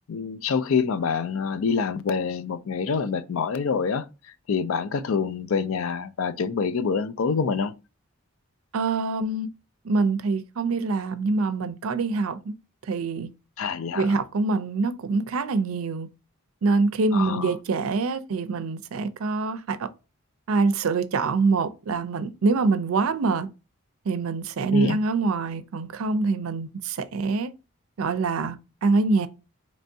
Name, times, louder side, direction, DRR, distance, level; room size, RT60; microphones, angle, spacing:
voice 1, 0.1-4.1 4.5-7.7 13.6-14.2 17.1-17.5 24.7-25.0, left 5 dB, 75° left, 0.4 m, -26 dB
voice 2, 8.7-9.5 9.8-12.5 12.9-13.3 13.9-16.1 16.6-19.9 20.5-23.5 24.1-27.5 28.0-28.6 28.8-29.3, right 3 dB, 75° right, 0.4 m, -25 dB
4.4 x 3.1 x 2.6 m
head